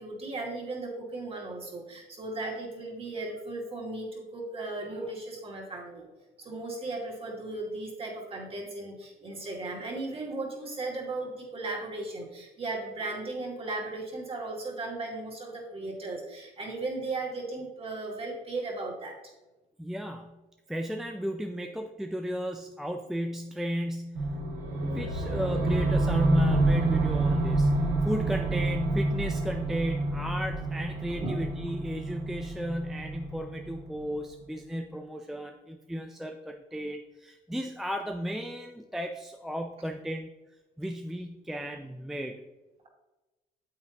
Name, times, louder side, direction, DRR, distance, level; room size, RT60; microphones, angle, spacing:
voice 1, 0.0-6.1 6.4-19.2 31.1-31.4, right 2 dB, 35° right, -1 dB, 2.4 m, -36 dB
voice 2, 19.8-20.4 20.7-24.4 24.8-27.7 28.0-40.3 40.8-42.4, equal, ahead, 4 dB, 0.5 m, -35 dB
sound 1, 24.2-34.2, right 2 dB, 85° right, 1.8 m, -28 dB
8.7 x 7.7 x 2.9 m, 1.1 s
cardioid pair, 110°, 17 cm